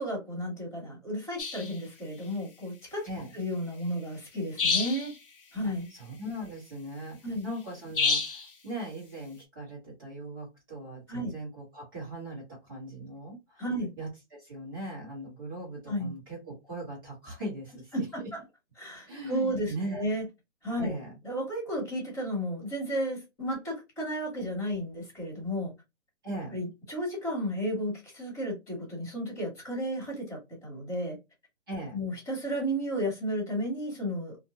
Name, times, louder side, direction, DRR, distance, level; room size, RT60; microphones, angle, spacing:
voice 1, 0.0-3.1 3.3-5.1 5.5-5.9 7.2-7.4 11.1-11.3 13.6-13.9 15.9-16.1 17.9-18.4 18.8-20.2 20.6-21.0 21.2-25.7 26.5-31.2 31.9-34.4, equal, 5° left, 0.9 m, -33 dB
sound 1, 1.4-1.7 4.6-5.1 7.9-8.5, left 4 dB, 50° left, 0.6 m, -28 dB
voice 2, 5.6-7.2 7.4-13.6 14.0-17.9 19.1-20.0 20.8-21.1 26.2-26.6 31.7-32.0, right 1 dB, 20° right, 1.1 m, -39 dB
2.5 x 2.1 x 2.7 m
hypercardioid pair, 180°, 36 cm